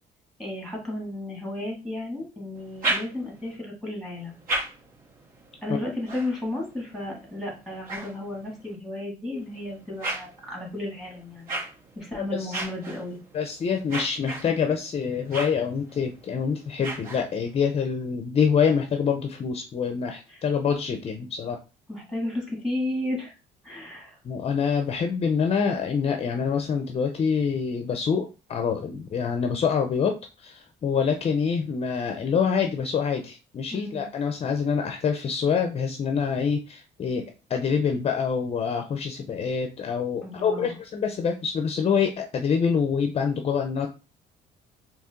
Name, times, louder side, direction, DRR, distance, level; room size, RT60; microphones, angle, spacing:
voice 1, 0.4-4.4 5.6-11.6 12.0-13.2 20.3-20.4 21.9-23.3 23.6-24.2 33.7-34.1 40.2-40.7, left 1 dB, ahead, -1 dB, 2.2 m, -33 dB
sound 1, 2.5-3.5 4.1-8.8 9.3-17.6, right 2 dB, 55° right, 1.9 m, -36 dB
voice 2, 12.1-12.6 13.3-21.6 24.2-37.2 37.5-43.9, left 6 dB, 35° left, 5 dB, 0.6 m, -26 dB
4.2 x 2.9 x 3.7 m, 0.31 s
cardioid pair, 110°, 17 cm